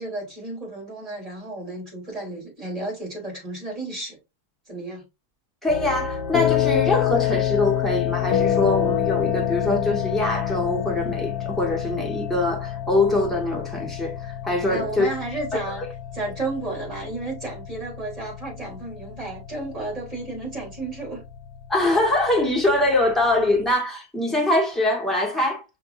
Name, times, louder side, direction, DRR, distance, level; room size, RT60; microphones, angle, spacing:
voice 1, 0.0-4.2 4.7-5.0 14.7-15.8 16.1-21.2, right 2 dB, 20° right, 3.2 m, -32 dB
voice 2, 5.6-15.9 21.7-25.6, left 2 dB, ahead, 1.4 m, -23 dB
sound 1, 5.7-23.7, left 11 dB, 85° left, 1.2 m, -27 dB
5.7 x 3.4 x 2.6 m
omnidirectional pair, 1.7 m